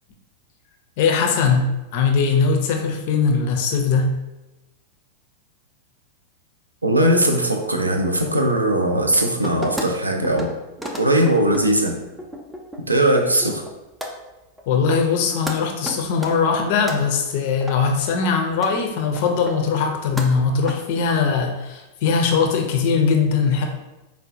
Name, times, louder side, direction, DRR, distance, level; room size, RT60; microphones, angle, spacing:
voice 1, 1.0-4.2 14.7-23.7, left 5 dB, 50° left, 3 dB, 0.5 m, -20 dB
voice 2, 6.8-10.5 11.0-12.0 12.9-13.6, right 1 dB, 85° right, 3 dB, 0.4 m, -19 dB
sound 1, 9.4-9.9 10.2-10.5 10.8-12.8 13.1-13.7 14.0-14.1 14.6-14.7 14.9-15.2 15.5-15.6 15.8-17.0 17.6-17.7 18.2-18.3 18.5-18.7 19.2-19.9 20.2-20.7, equal, 5° right, 0.5 m, -32 dB
4.4 x 2.1 x 2.6 m, 1.0 s
figure-of-eight pair, 90°, 0 cm